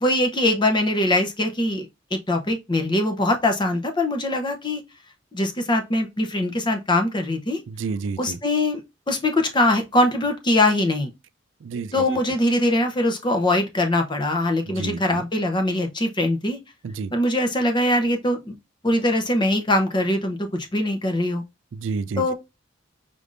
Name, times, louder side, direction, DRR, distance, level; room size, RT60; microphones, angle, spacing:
voice 1, 0.0-4.8 5.3-7.6 8.2-11.1 11.9-16.6 17.1-18.6 18.8-21.4 22.2-22.3, left 1 dB, 25° left, 0.7 m, -22 dB
voice 2, 7.7-8.4 11.6-12.2 14.7-15.2 16.8-17.1 21.7-22.3, right 4 dB, 75° right, 0.4 m, -30 dB
5.1 x 3.4 x 2.5 m
head